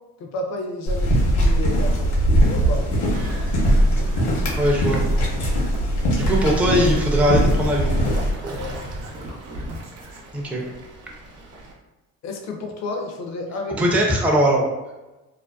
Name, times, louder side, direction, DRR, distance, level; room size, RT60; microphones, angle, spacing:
voice 1, 0.2-2.1 2.4-2.9 6.2-6.3 6.7-6.8 8.5-8.8 12.2-13.8, left 2 dB, 50° left, 3 dB, 0.5 m, -31 dB
sound 1, 0.9-8.3, right 1 dB, 75° left, 0.9 m, -20 dB
sound 2, 2.6-10.2, equal, 90° right, 0.7 m, -36 dB
voice 2, 4.6-5.0 6.2-7.9 10.3-10.7 13.8-14.6, equal, 5° right, -2 dB, 0.4 m, -20 dB
Fowl / Bird, 6.3-11.7, equal, 45° right, 0.7 m, -37 dB
2.5 x 2.1 x 2.2 m, 1.1 s
supercardioid pair, 75°, 35 cm